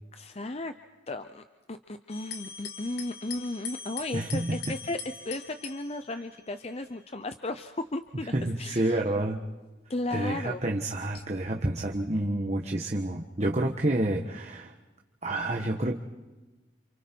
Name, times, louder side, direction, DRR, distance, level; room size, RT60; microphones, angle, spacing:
voice 1, 0.1-0.7 1.1-5.0 5.2-9.0 9.9-10.6, left 2 dB, 35° left, 9 dB, 0.7 m, -35 dB
sound 1, 2.1-6.8 7.7-8.1 8.8-8.9 11.1-11.6, left 6 dB, 55° left, 2.6 m, -42 dB
voice 2, 4.1-4.6 8.3-9.4 10.1-14.7 15.2-16.0, right 1 dB, 35° right, 0 dB, 1.4 m, -29 dB
29.0 x 28.0 x 4.6 m, 1.2 s
head